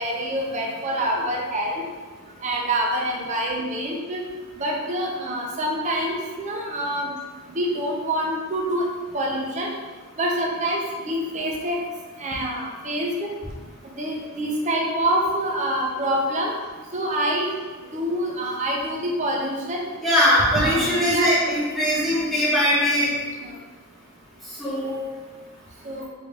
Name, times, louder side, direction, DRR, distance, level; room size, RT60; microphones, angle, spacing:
voice 1, 0.0-1.8 2.4-4.2 4.6-7.1 7.5-8.8 9.1-9.7 10.2-11.8 12.2-13.3 14.0-16.5 16.9-17.5 17.9-19.9 20.6-21.5 23.4-23.5 25.8-26.1, right 1 dB, 35° right, -1 dB, 0.5 m, -26 dB
voice 2, 20.0-23.1 24.6-25.0, equal, ahead, -9 dB, 0.9 m, -21 dB
3.1 x 2.6 x 3.3 m, 1.4 s
head